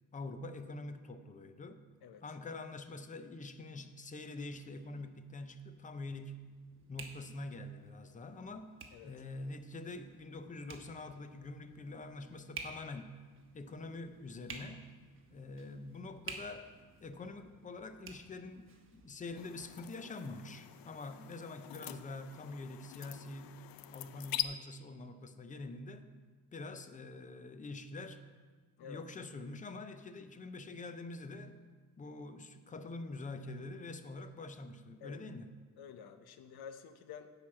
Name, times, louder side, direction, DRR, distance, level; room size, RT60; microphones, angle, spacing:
voice 1, 0.1-1.8 2.2-6.4 6.9-8.7 9.0-13.1 13.5-14.9 15.3-16.7 17.0-23.6 23.9-26.1 26.5-28.2 28.8-31.6 32.0-35.5, left 2 dB, 20° left, 9 dB, 0.5 m, -45 dB
sound 1, 4.5-19.7, right 4 dB, 35° right, 1.0 m, -53 dB
sound 2, 19.3-24.4, left 13 dB, 70° left, 0.5 m, -44 dB
voice 2, 35.8-37.3, left 7 dB, 85° left, 9 dB, 0.8 m, -50 dB
10.5 x 4.8 x 7.2 m, 1.5 s
cardioid pair, 155°, 36 cm